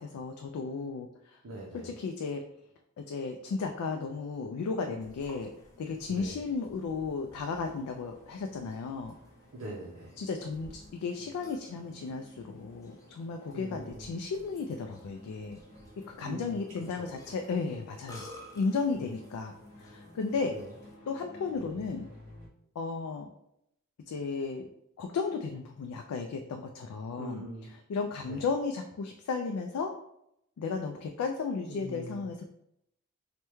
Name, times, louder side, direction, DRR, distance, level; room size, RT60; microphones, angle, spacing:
voice 1, 0.0-1.4 1.8-2.4 3.0-5.5 5.8-9.1 10.2-15.6 16.1-18.3 18.5-20.5 21.1-22.1 22.8-23.3 24.1-24.7 25.0-27.4 27.9-29.9 30.6-32.5, left 4 dB, 90° left, 4 dB, 0.3 m, -34 dB
voice 2, 1.4-2.0 6.1-6.4 9.5-10.2 13.5-14.1 16.2-16.6 17.0-17.2 17.7-17.8 19.0-19.1 20.5-20.7 27.2-27.7 28.2-28.5 31.7-32.3, right 1 dB, 90° right, -3 dB, 0.6 m, -43 dB
Burping eructation, 5.0-20.9, left 1 dB, 15° left, 0.5 m, -55 dB
sound 1, 7.4-22.5, left 1 dB, 60° left, 0.7 m, -55 dB
3.3 x 2.1 x 3.0 m, 0.77 s
head